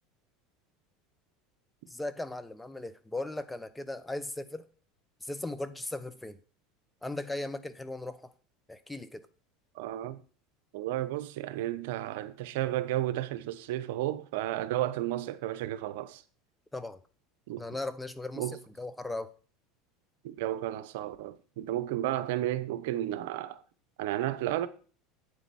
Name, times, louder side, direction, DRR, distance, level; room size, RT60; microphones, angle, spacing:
voice 1, 1.9-4.7 5.2-6.4 7.0-8.3 8.7-9.2 16.7-17.0 17.6-18.5 18.8-19.3, left 2 dB, 10° left, 0.8 m, -37 dB
voice 2, 9.7-10.2 10.7-16.2 17.5-17.6 18.4-18.6 20.2-23.6 24.0-24.7, right 14 dB, 75° right, 0.8 m, -32 dB
8.9 x 8.0 x 4.2 m
supercardioid pair, 110°, 0 cm